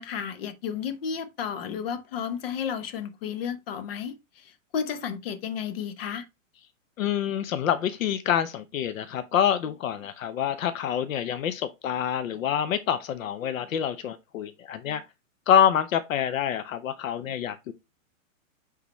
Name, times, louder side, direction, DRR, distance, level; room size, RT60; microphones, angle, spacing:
voice 1, 0.0-6.2, left 7 dB, 45° left, 1.0 m, -33 dB
voice 2, 7.0-15.0 15.5-17.7, left 9 dB, 75° left, 0.8 m, -26 dB
8.3 x 3.9 x 3.1 m
hypercardioid pair, 165°, 41 cm